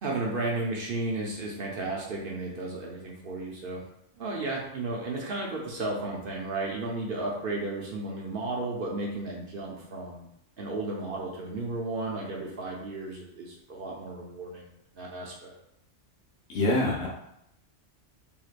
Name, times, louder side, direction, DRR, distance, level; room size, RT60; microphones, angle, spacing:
voice 1, 0.0-3.9 4.2-10.3 10.6-14.7 15.0-15.5, right 2 dB, 60° right, -3 dB, 0.7 m, -33 dB
voice 2, 16.5-17.1, left 2 dB, 70° left, -2 dB, 1.0 m, -25 dB
3.1 x 2.8 x 2.4 m, 0.78 s
omnidirectional pair, 1.2 m